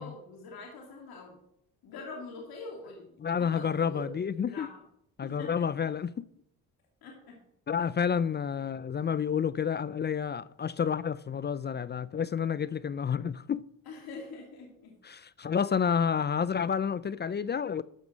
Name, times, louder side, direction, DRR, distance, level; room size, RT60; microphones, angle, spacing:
voice 1, 0.0-1.4 1.8-3.1 3.4-4.8 5.2-5.9 7.0-7.4 13.9-14.9 15.9-16.0, left 3 dB, 75° left, 2.6 m, -44 dB
voice 2, 3.2-4.7 5.2-6.3 7.7-13.6 15.0-17.8, left 7 dB, 30° left, 0.4 m, -30 dB
14.0 x 5.3 x 6.0 m
cardioid pair, 75°, 37 cm